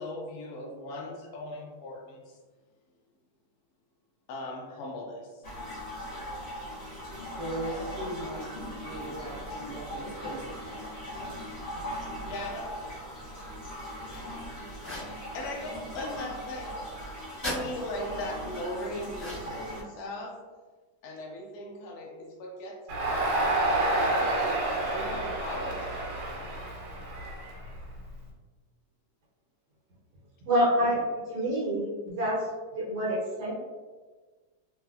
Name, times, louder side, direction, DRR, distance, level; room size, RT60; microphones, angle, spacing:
voice 1, 0.0-2.4 4.3-5.4 12.3-12.8 14.0-16.7 17.4-20.4 21.0-23.5 24.1-24.6 24.9-26.0, left 1 dB, 75° left, -1 dB, 0.8 m, -39 dB
sound 1, 5.4-19.8, equal, 55° left, 1.0 m, -39 dB
voice 2, 7.4-8.5 8.8-10.5, right 1 dB, 30° right, -13 dB, 0.7 m, -38 dB
sound 2, 14.8-15.2 17.4-17.6 19.1-19.7, left 1 dB, 15° left, 1.1 m, -36 dB
Crowd, 22.9-28.1, right 2 dB, 75° right, 1.6 m, -29 dB
voice 3, 30.4-31.0 31.3-32.4 32.7-33.5, equal, 55° right, -6 dB, 1.3 m, -27 dB
3.2 x 2.8 x 2.3 m, 1.4 s
omnidirectional pair, 2.3 m